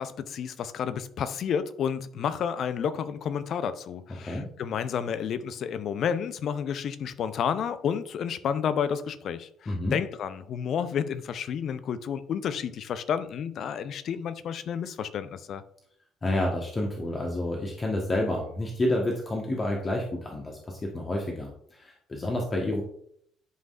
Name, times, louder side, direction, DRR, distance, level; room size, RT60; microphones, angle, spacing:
voice 1, 0.0-15.6, left 7 dB, 50° left, 0.6 m, -31 dB
voice 2, 4.2-4.5 9.7-10.0 16.2-22.8, left 1 dB, 30° left, 1.3 m, -29 dB
11.0 x 5.4 x 2.5 m
figure-of-eight pair, 50°, 0 cm